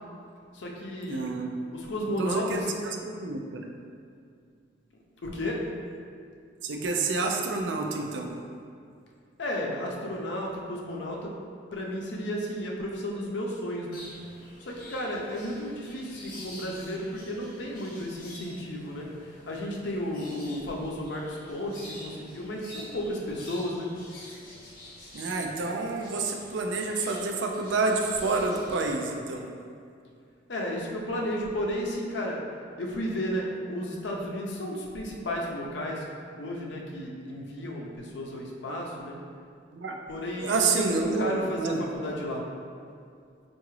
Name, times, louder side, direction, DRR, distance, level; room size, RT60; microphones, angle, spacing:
voice 1, 0.5-1.3 1.7-2.7 5.2-5.6 9.4-11.3 11.7-14.0 14.6-23.9 30.5-32.4 32.8-36.0 36.4-39.2 40.1-42.4, equal, 80° left, -1 dB, 0.6 m, -33 dB
voice 2, 1.1-1.6 2.2-3.6 6.6-8.4 20.1-20.3 25.1-29.5 38.7-38.8 39.7-40.1 40.4-41.8, right 3 dB, 85° right, 2 dB, 0.4 m, -29 dB
sound 1, 13.9-28.8, left 1 dB, 50° left, 0.9 m, -48 dB
4.7 x 2.6 x 3.0 m, 2.3 s
head